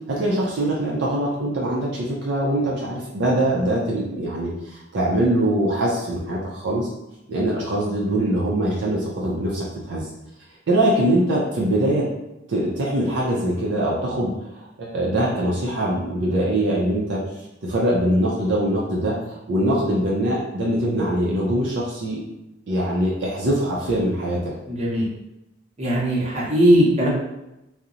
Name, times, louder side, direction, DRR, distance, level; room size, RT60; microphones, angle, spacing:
voice 1, 0.1-6.9 7.3-10.1 10.7-12.1 12.5-17.2 17.6-22.2 22.7-24.5, right 1 dB, 65° right, -4 dB, 0.4 m, -23 dB
voice 2, 24.7-25.1 25.8-27.1, equal, 35° right, -6 dB, 0.7 m, -19 dB
2.7 x 2.0 x 2.5 m, 0.91 s
head